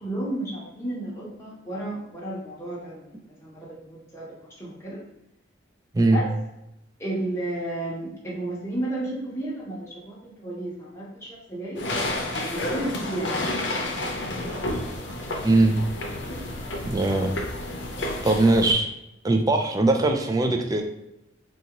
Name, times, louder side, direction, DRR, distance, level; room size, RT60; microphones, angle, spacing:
voice 1, 0.0-5.0 6.0-6.3 7.0-11.9 12.4-13.6 16.3-16.4, right 1 dB, 15° left, -6 dB, 0.8 m, -33 dB
sound 1, 11.8-18.7, left 1 dB, 70° left, 0.6 m, -30 dB
voice 2, 15.4-15.8 16.8-17.3 18.2-18.9 19.2-20.8, right 2 dB, 20° right, 4 dB, 0.3 m, -20 dB
3.9 x 2.4 x 2.9 m, 0.87 s
head